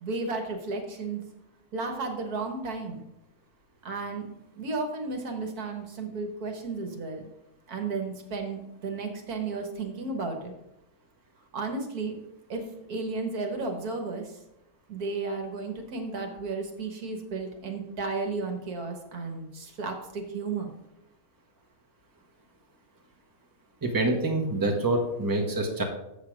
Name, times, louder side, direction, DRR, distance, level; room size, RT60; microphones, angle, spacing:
voice 1, 0.0-1.2 1.7-3.0 3.9-4.3 4.6-7.2 7.7-10.5 11.5-12.2 12.5-12.6 12.9-14.3 14.9-20.7, right 3 dB, 75° right, 4 dB, 1.7 m, -33 dB
voice 2, 23.8-25.8, right 2 dB, 15° right, 1 dB, 1.1 m, -26 dB
7.4 x 6.6 x 4.8 m, 0.88 s
omnidirectional pair, 1.6 m